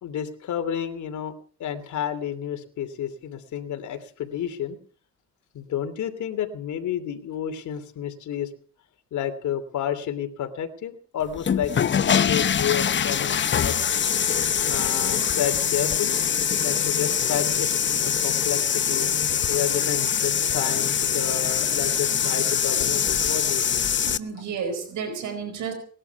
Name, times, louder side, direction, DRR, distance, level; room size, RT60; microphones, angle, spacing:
voice 1, 0.0-1.3 1.6-4.8 5.5-8.5 9.1-14.2 14.7-16.2 16.6-19.1 19.5-23.8, left 9 dB, 70° left, 8 dB, 2.9 m, -31 dB
sound 1, 11.3-24.2, left 8 dB, 40° left, 0.8 m, -23 dB
voice 2, 24.0-25.7, right 5 dB, 75° right, 8 dB, 4.8 m, -31 dB
20.0 x 12.0 x 5.9 m, 0.43 s
cardioid pair, 90°, 30 cm